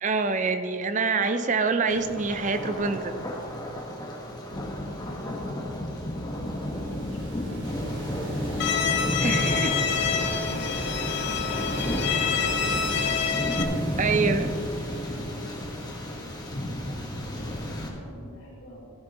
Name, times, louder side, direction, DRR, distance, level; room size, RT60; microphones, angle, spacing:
voice 1, 0.0-3.2 9.2-9.7 14.0-14.5, right 4 dB, 35° right, 9 dB, 0.5 m, -26 dB
Thunder, 1.9-17.9, equal, 20° left, 1.4 m, -32 dB
voice 2, 5.0-6.0 6.3-8.5 9.3-10.8 11.2-11.8 12.3-13.7 14.5-14.7 15.1-18.8, left 1 dB, 70° left, -10 dB, 2.7 m, -46 dB
sound 1, 6.2-16.0, right 3 dB, 55° right, 0.9 m, -42 dB
Bowed string instrument, 8.6-13.6, left 7 dB, 50° left, 0.6 m, -27 dB
15.0 x 10.5 x 3.0 m, 2.7 s
head